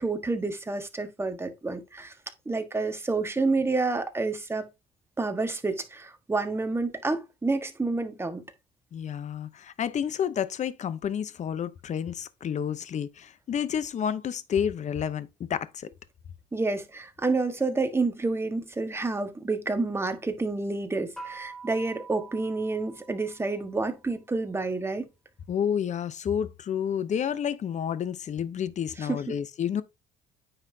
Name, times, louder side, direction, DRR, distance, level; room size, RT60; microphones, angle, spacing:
voice 1, 0.0-2.1 2.4-4.7 5.2-8.5 16.5-25.1 28.9-29.4, right 3 dB, 15° right, 1.4 m, -29 dB
voice 2, 8.9-15.9 25.5-29.8, left 8 dB, 45° left, 0.8 m, -30 dB
sound 1, 21.2-23.9, right 4 dB, 5° left, 2.6 m, -45 dB
9.3 x 5.6 x 2.8 m
cardioid pair, 110°, 17 cm